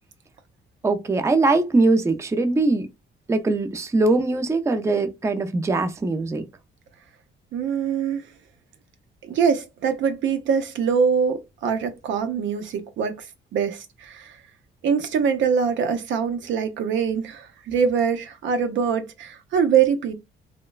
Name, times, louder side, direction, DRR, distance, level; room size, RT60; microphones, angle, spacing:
voice 1, 0.8-2.9 3.3-6.4, right 3 dB, 15° right, 0.4 m, -21 dB
voice 2, 7.5-8.2 9.3-13.1 13.5-14.2 14.8-20.1, right 6 dB, 75° right, 0.6 m, -23 dB
3.1 x 2.0 x 2.3 m
cardioid pair, 90°, 20 cm